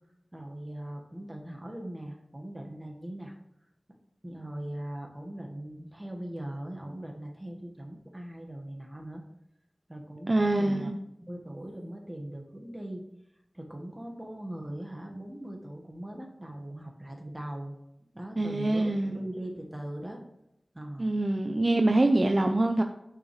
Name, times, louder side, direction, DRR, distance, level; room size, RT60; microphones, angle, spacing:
voice 1, 0.3-3.3 4.2-9.2 9.9-10.9 11.3-13.0 13.5-17.8 18.1-20.2 20.7-21.1, right 1 dB, 25° right, 1 dB, 1.5 m, -40 dB
voice 2, 10.3-11.0 18.4-19.2 21.0-22.8, right 2 dB, 50° right, 5 dB, 0.5 m, -25 dB
8.5 x 6.5 x 3.2 m, 0.85 s
wide cardioid pair, 45°, 0 cm